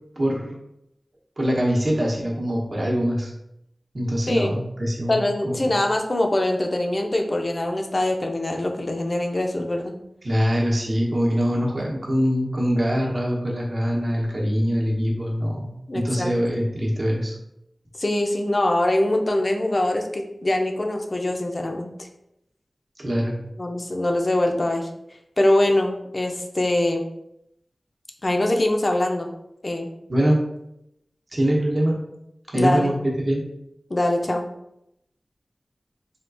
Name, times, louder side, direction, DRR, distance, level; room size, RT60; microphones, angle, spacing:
voice 1, 0.2-0.6 1.4-3.3 3.9-5.8 10.2-17.4 23.0-23.3 30.1-30.4 31.3-32.0 32.5-33.4, equal, 55° right, -3 dB, 0.8 m, -23 dB
voice 2, 5.1-10.0 15.9-16.3 18.0-21.9 23.6-24.9 25.4-27.0 28.2-29.3 29.6-29.9 32.5-32.9 33.9-34.4, left 1 dB, 45° left, 3 dB, 0.4 m, -23 dB
3.5 x 2.3 x 2.5 m, 0.82 s
wide cardioid pair, 70°, 0 cm